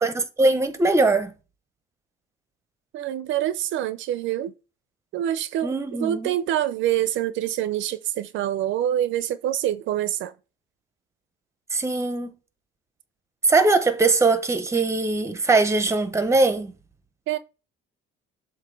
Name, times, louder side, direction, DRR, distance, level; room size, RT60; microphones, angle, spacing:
voice 1, 0.0-1.3 5.6-6.3 11.7-12.3 13.4-16.7, right 3 dB, 15° right, 0.9 m, -21 dB
voice 2, 2.9-4.5 5.1-5.7 6.0-10.3 17.3-17.4, right 12 dB, 70° right, 0.6 m, -26 dB
7.5 x 2.8 x 5.2 m
cardioid pair, 140°, 21 cm